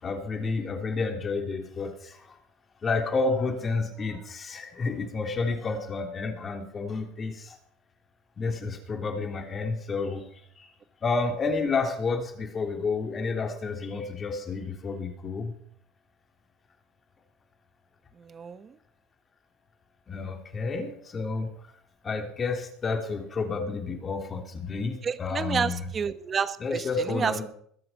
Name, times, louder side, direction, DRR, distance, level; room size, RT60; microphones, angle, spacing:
voice 1, 0.0-2.3 2.8-7.6 8.4-10.7 11.0-15.5 20.1-21.5 22.0-25.9 26.6-27.4, left 4 dB, 30° left, 4 dB, 3.3 m, -30 dB
voice 2, 18.2-18.8 25.0-27.4, right 6 dB, 30° right, 13 dB, 1.1 m, -30 dB
21.5 x 7.8 x 6.0 m, 0.64 s
supercardioid pair, 105°, 0 cm